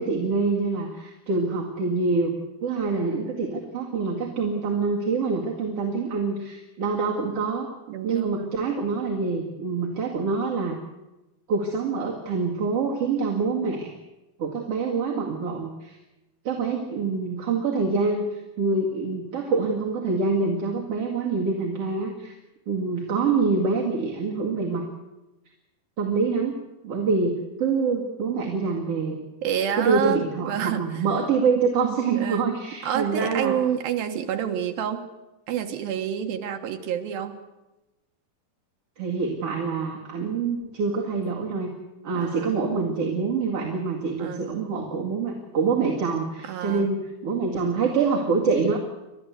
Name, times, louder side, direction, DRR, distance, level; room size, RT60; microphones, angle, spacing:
voice 1, 0.0-7.7 8.0-10.8 11.5-13.9 14.4-16.0 16.4-22.3 22.7-24.8 26.0-29.2 29.8-33.6 39.0-41.7 42.0-48.8, right 4 dB, 45° right, -2 dB, 2.7 m, -26 dB
voice 2, 7.9-8.5 29.4-31.0 31.8-32.6 32.8-35.1 35.5-37.4 42.1-42.5 44.2-44.5 46.4-47.0, right 9 dB, 70° right, 6 dB, 2.9 m, -29 dB
30.0 x 13.0 x 8.2 m, 1.0 s
omnidirectional pair, 4.6 m